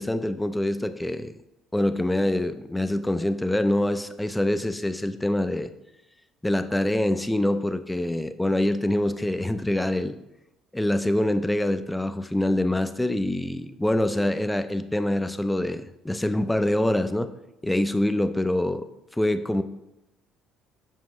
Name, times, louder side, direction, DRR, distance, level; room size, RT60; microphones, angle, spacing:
voice 1, 0.0-1.3 1.7-5.7 6.4-10.2 10.7-17.3 17.6-18.8 19.2-19.6, left 1 dB, 5° left, 9 dB, 0.4 m, -25 dB
7.3 x 5.6 x 3.0 m, 0.91 s
cardioid pair, 140°, 0 cm